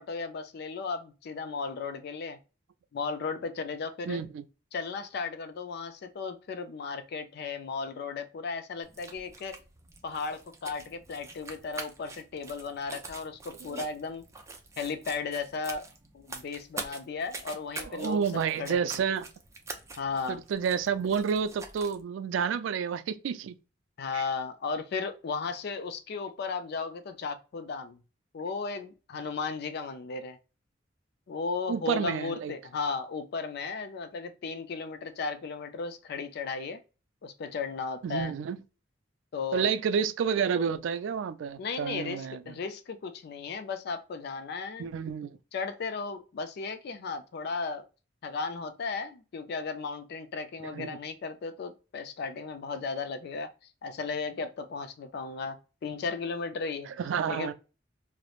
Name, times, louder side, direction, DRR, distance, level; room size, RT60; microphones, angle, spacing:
voice 1, 0.0-2.4 2.9-4.2 4.7-9.6 10.0-14.2 14.8-15.9 16.1-19.0 20.0-20.4 24.0-28.0 28.3-30.4 31.3-36.8 37.2-38.3 39.3-39.7 41.6-44.9 45.5-47.8 48.2-53.5 53.8-56.9 57.3-57.5, left 4 dB, 60° left, 0.4 m, -35 dB
voice 2, 4.1-4.4 13.6-13.8 17.8-19.3 20.3-23.5 24.1-24.2 31.7-32.5 38.0-38.6 39.5-42.4 44.8-45.3 50.6-51.0 57.0-57.5, right 7 dB, 85° right, 0.3 m, -30 dB
sound 1, 8.8-22.0, right 3 dB, 15° right, 0.4 m, -45 dB
2.9 x 2.0 x 2.3 m
head